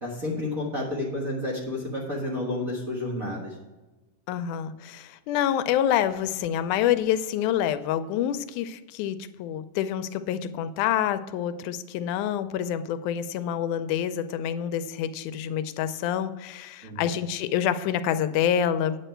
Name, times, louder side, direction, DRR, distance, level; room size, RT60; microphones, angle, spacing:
voice 1, 0.0-3.5 16.8-17.1, left 1 dB, 40° right, -3 dB, 1.3 m, -30 dB
voice 2, 4.3-19.0, left 10 dB, 85° left, 12 dB, 2.0 m, -27 dB
9.1 x 8.4 x 4.4 m, 1.1 s
omnidirectional pair, 3.5 m